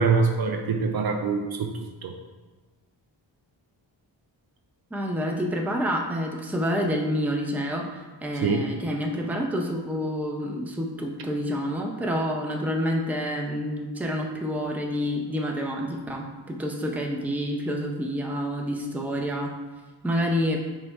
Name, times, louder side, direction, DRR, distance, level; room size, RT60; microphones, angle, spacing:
voice 1, 0.0-1.7 2.0-2.2 8.4-8.6, right 4 dB, 55° right, 4 dB, 0.5 m, -24 dB
voice 2, 4.9-19.5 20.0-20.6, equal, 5° right, 1 dB, 0.5 m, -28 dB
3.4 x 3.1 x 4.4 m, 1.3 s
cardioid pair, 65°, 45 cm